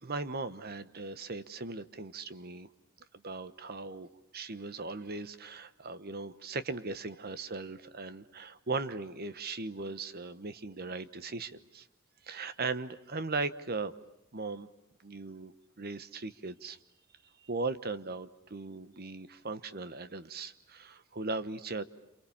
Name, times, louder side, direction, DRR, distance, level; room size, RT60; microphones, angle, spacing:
voice 1, 0.0-2.7 3.2-4.1 4.3-11.9 12.2-13.9 14.3-14.7 15.0-16.8 17.4-21.8, right 3 dB, 45° right, 13 dB, 1.2 m, -38 dB
29.0 x 28.0 x 7.2 m, 0.82 s
head